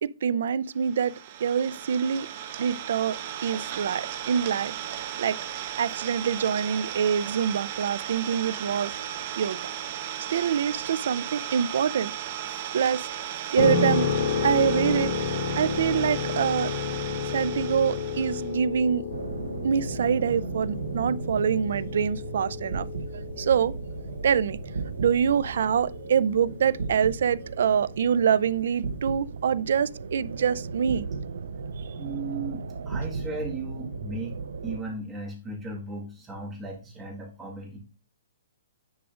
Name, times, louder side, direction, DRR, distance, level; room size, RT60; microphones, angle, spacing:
voice 1, 0.0-1.1 1.4-2.3 2.6-4.7 5.2-5.4 5.6-8.9 9.4-9.6 10.3-12.1 12.7-13.1 13.5-14.1 14.4-15.1 15.6-16.7 17.3-19.0 19.6-24.0 24.2-24.6 25.0-31.1, right 7 dB, 60° right, 0.4 m, -25 dB
Idling, 0.8-18.5, right 10 dB, 35° right, 0.9 m, -36 dB
sound 1, 13.6-28.2, left 4 dB, 55° left, 1.6 m, -32 dB
sound 2, 19.1-34.8, right 4 dB, 85° right, 0.7 m, -36 dB
voice 2, 31.9-34.4 34.6-37.8, right 3 dB, 10° right, 1.7 m, -36 dB
10.0 x 4.9 x 2.5 m
hypercardioid pair, 170°, 0 cm